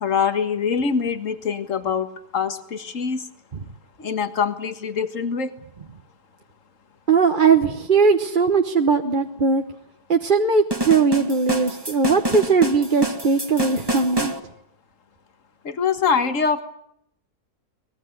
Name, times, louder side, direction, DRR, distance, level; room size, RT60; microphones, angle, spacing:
voice 1, 0.0-2.1 2.3-3.2 4.0-5.5 15.7-16.6, left 6 dB, 50° left, 9 dB, 1.9 m, -23 dB
voice 2, 7.1-9.6 10.1-14.3, right 5 dB, 35° right, 5 dB, 1.2 m, -19 dB
sound 1, 10.7-14.4, right 1 dB, 15° right, 1.7 m, -27 dB
24.0 x 20.5 x 9.9 m, 0.76 s
omnidirectional pair, 1.7 m